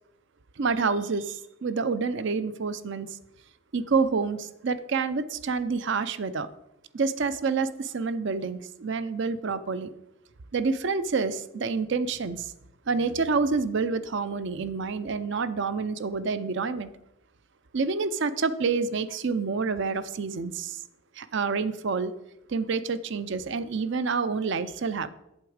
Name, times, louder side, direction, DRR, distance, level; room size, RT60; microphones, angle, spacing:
voice 1, 0.6-3.2 3.7-6.5 6.9-9.9 10.5-12.5 12.9-16.9 17.7-20.8 21.2-22.1 22.5-25.1, right 4 dB, 55° right, 14 dB, 0.5 m, -28 dB
8.0 x 7.9 x 4.9 m, 0.86 s
head